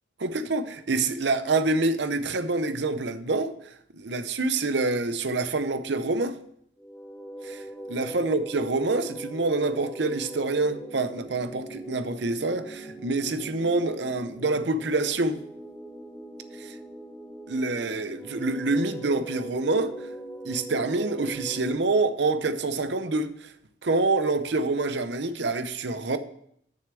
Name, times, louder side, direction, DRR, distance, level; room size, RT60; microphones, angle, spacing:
voice 1, 0.2-6.4 7.4-15.4 16.6-16.8 17.5-20.1 20.4-23.5 23.8-26.2, right 3 dB, 60° right, 0.7 m, -27 dB
sound 1, 6.8-21.8, right 1 dB, 5° left, 0.7 m, -41 dB
6.8 x 6.4 x 6.8 m
head